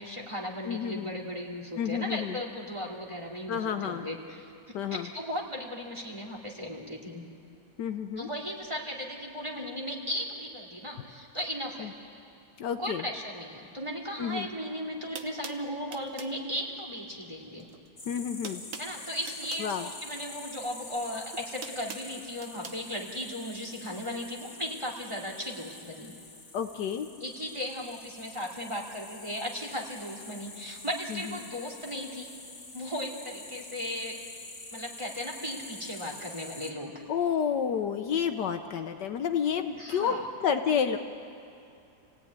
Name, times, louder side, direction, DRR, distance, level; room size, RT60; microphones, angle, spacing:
voice 1, 0.0-7.2 8.2-11.9 12.8-17.7 18.8-26.1 27.2-32.3 32.7-34.2 34.7-37.0 39.8-40.2, equal, 15° right, 0 dB, 2.6 m, -36 dB
voice 2, 0.7-1.1 1.8-2.4 3.5-4.1 4.7-5.1 7.8-8.3 11.8-11.9 12.6-13.0 14.2-14.5 18.1-18.6 19.6-19.9 26.5-27.1 31.1-31.3 37.1-41.0, left 7 dB, 70° left, 7 dB, 1.4 m, -30 dB
sound 1, 14.6-14.7 15.1-16.4 17.6-17.9 18.1-19.7 20.9-22.8, right 5 dB, 50° right, 1.4 m, -43 dB
sound 2, 18.0-36.7, left 2 dB, 30° left, 2.8 m, -46 dB
28.0 x 17.0 x 9.6 m, 2.6 s
omnidirectional pair, 2.0 m